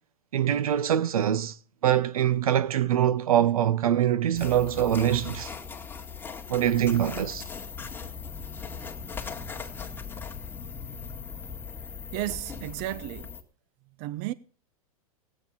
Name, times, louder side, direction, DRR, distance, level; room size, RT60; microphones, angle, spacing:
voice 1, 0.3-1.5 1.8-5.5 6.5-7.4, right 10 dB, 80° right, 0.9 m, -24 dB
sound 1, 4.3-13.4, left 6 dB, 10° left, 2.0 m, -39 dB
voice 2, 12.1-13.3 14.0-14.3, right 15 dB, 45° right, 0.7 m, -33 dB
17.0 x 9.0 x 5.6 m
hypercardioid pair, 110°, 18 cm